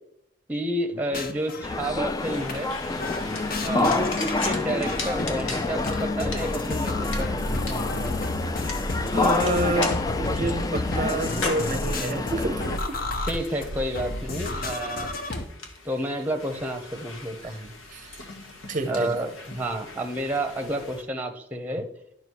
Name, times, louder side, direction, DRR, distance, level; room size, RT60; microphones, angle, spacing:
voice 1, 0.5-2.7 3.6-8.1 13.3-15.1 15.8-17.7 18.9-21.9, right 1 dB, 10° right, 0.9 m, -30 dB
sound 1, 0.9-2.2 2.5-2.6 3.0-15.5, left 2 dB, 45° left, 0.8 m, -32 dB
sound 2, 1.3-21.0, left 3 dB, 85° left, 1.5 m, -40 dB
sound 3, 1.6-12.8, left 3 dB, 20° left, 0.3 m, -28 dB
voice 2, 3.7-4.1 9.1-13.0 17.9-18.1 18.7-19.1, right 2 dB, 40° right, 0.6 m, -28 dB
11.0 x 5.8 x 4.7 m
head